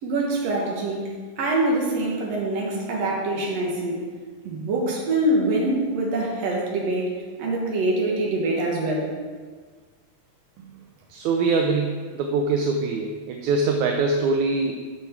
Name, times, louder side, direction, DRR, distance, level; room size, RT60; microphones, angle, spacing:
voice 1, 0.0-4.0 4.4-9.1, right 2 dB, 60° right, -2 dB, 2.5 m, -25 dB
voice 2, 11.1-14.9, right 3 dB, 80° right, 3 dB, 2.0 m, -23 dB
9.0 x 6.4 x 4.5 m, 1.5 s
omnidirectional pair, 3.4 m